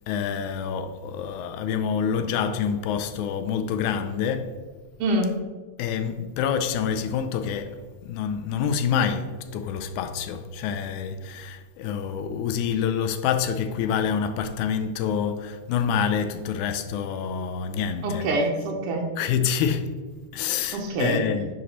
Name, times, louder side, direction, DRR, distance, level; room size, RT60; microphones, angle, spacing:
voice 1, 0.1-4.6 5.8-18.3 19.2-20.0 20.3-21.4, left 7 dB, 85° left, 2.0 m, -27 dB
voice 2, 5.0-5.3 18.0-19.1 20.7-21.5, right 1 dB, 75° right, 1.3 m, -25 dB
9.4 x 4.0 x 2.9 m
omnidirectional pair, 3.4 m